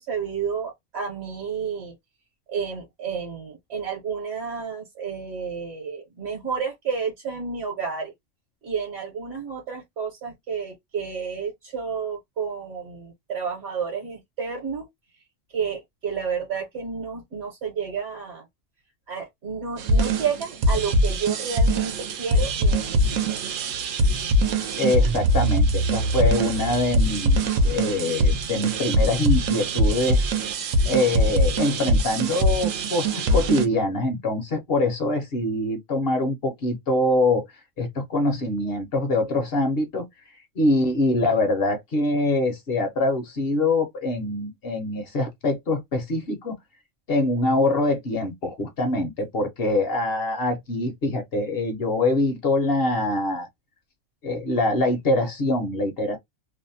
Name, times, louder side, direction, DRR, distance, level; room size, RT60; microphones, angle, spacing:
voice 1, 0.1-1.9 2.5-8.1 8.6-14.8 15.5-18.4 19.1-21.9 22.2-22.8 23.1-23.4, right 6 dB, 65° right, 1.1 m, -31 dB
sound 1, 19.8-33.7, right 1 dB, 90° right, 1.0 m, -22 dB
voice 2, 24.8-30.3 30.9-37.5 37.8-40.1 40.6-46.6 47.1-53.5 54.2-56.2, left 2 dB, 60° left, 0.9 m, -24 dB
2.7 x 2.0 x 2.6 m
omnidirectional pair, 1.3 m